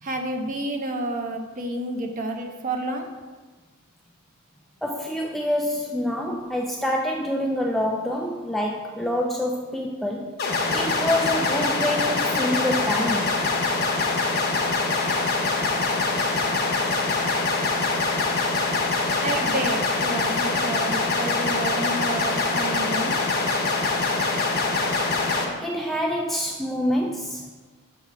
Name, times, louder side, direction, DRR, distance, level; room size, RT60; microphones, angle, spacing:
voice 1, 0.0-3.1 19.2-23.2, right 2 dB, 35° right, 3 dB, 0.7 m, -30 dB
voice 2, 4.8-10.4 10.7-13.4 25.6-27.5, left 1 dB, ahead, -1 dB, 0.3 m, -26 dB
sound 1, 10.4-25.4, left 3 dB, 45° left, 0.9 m, -24 dB
7.1 x 2.9 x 5.7 m, 1.3 s
head